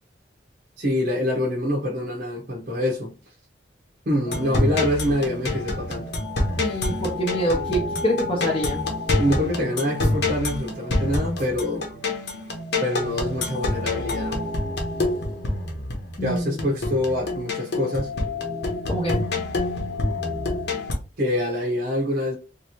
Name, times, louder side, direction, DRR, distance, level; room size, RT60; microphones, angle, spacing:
voice 1, 0.8-3.1 4.1-6.1 9.1-11.9 12.8-14.4 16.2-18.1 21.2-22.4, left 1 dB, 50° right, 0.7 m, -25 dB
sound 1, 4.3-20.9, left 2 dB, 60° left, 0.9 m, -27 dB
voice 2, 6.6-8.8 16.2-16.7 18.9-19.2, right 1 dB, 30° left, 0.6 m, -25 dB
3.1 x 2.7 x 2.9 m
head